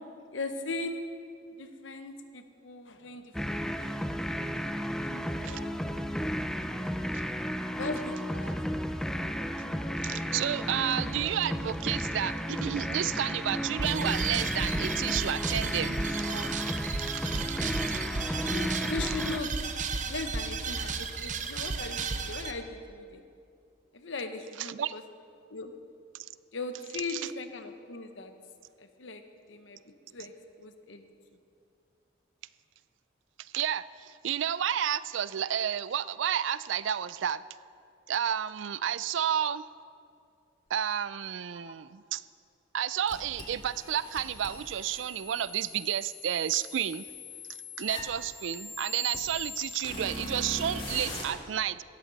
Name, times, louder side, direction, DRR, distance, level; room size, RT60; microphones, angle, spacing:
voice 1, 0.3-1.1 1.6-4.2 4.8-5.9 6.5-6.8 7.7-8.6 18.5-19.5 20.1-23.2 23.9-25.0 25.5-25.7 26.5-28.3 28.8-29.2 29.5-29.8 30.1-30.3 30.6-31.1 41.5-41.7, left 3 dB, 80° left, 7 dB, 1.0 m, -39 dB
sound 1, 3.3-19.4, equal, 5° left, 0.4 m, -33 dB
voice 2, 10.0-18.0 24.6-24.9 27.1-27.2 33.4-37.4 38.1-39.7 40.7-42.2 42.7-47.1 47.8-51.8, right 9 dB, 80° right, 17 dB, 0.4 m, -31 dB
sound 2, 13.8-22.5, right 4 dB, 40° right, 0.7 m, -34 dB
sound 3, 43.1-51.2, left 2 dB, 25° left, 2.4 m, -41 dB
17.5 x 13.0 x 4.1 m, 2.4 s
head